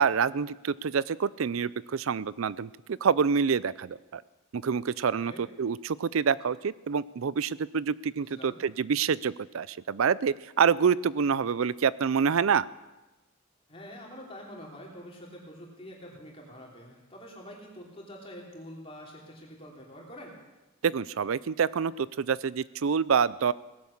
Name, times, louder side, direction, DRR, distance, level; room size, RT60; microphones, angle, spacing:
voice 1, 0.0-4.2 4.5-5.3 5.6-12.7 20.8-23.5, right 6 dB, 75° right, 20 dB, 0.5 m, -27 dB
voice 2, 8.2-8.6 13.7-20.4, equal, 25° left, -2 dB, 3.3 m, -46 dB
18.0 x 11.0 x 7.2 m, 1.1 s
head